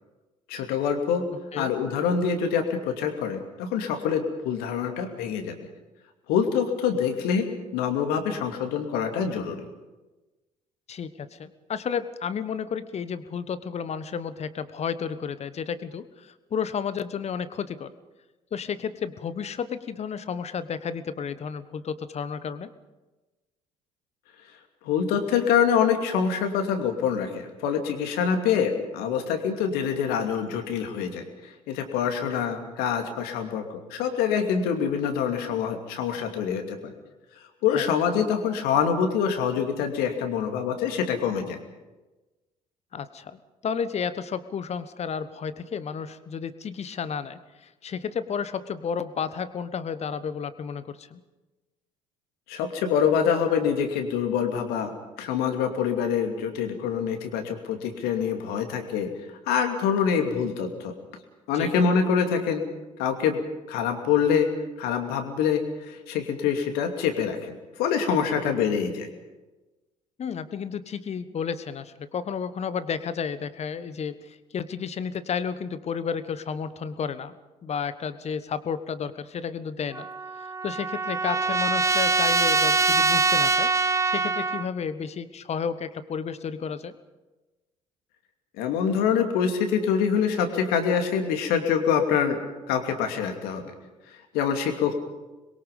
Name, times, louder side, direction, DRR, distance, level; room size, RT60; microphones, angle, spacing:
voice 1, 0.5-1.3 1.6-5.6 6.3-9.6 24.8-36.9 37.6-41.6 52.5-54.9 55.2-59.1 59.5-60.9 61.5-62.6 63.0-63.4 63.7-64.5 64.8-67.5 67.8-69.1 88.6-92.4 92.7-93.7 94.3-94.9, left 7 dB, 60° left, 5 dB, 2.6 m, -25 dB
voice 2, 10.9-17.9 18.5-22.7 37.7-37.9 42.9-51.2 61.5-61.7 70.2-77.3 77.6-80.1 80.6-83.7 84.0-86.9, left 6 dB, 40° left, 14 dB, 1.2 m, -32 dB
Trumpet, 79.9-84.7, right 4 dB, 15° right, 1.0 m, -23 dB
26.0 x 22.0 x 5.4 m, 1.1 s
figure-of-eight pair, 55°, 18 cm